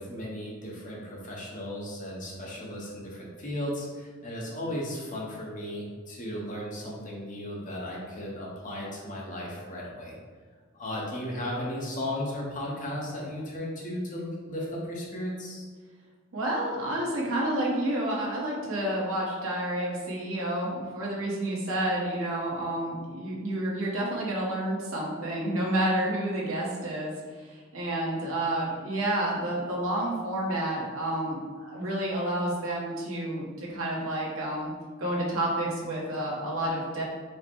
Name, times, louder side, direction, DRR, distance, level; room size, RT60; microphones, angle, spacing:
voice 1, 0.0-10.2 10.7-15.7, left 1 dB, 35° left, -4 dB, 0.9 m, -35 dB
voice 2, 16.3-27.1 27.4-34.7 35.0-37.0, right 1 dB, 80° right, -4 dB, 1.2 m, -30 dB
4.7 x 2.2 x 4.5 m, 1.6 s
head